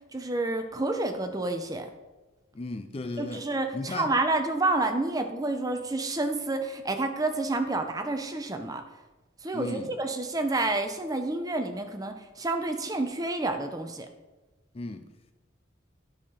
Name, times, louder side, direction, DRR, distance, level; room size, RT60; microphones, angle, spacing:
voice 1, 0.1-1.9 3.2-8.8 9.4-14.1, right 2 dB, 20° right, 0.7 m, -29 dB
voice 2, 2.5-3.5 3.7-4.1 9.5-10.0 14.7-15.1, left 2 dB, 30° left, 0.4 m, -35 dB
10.5 x 5.8 x 5.0 m
head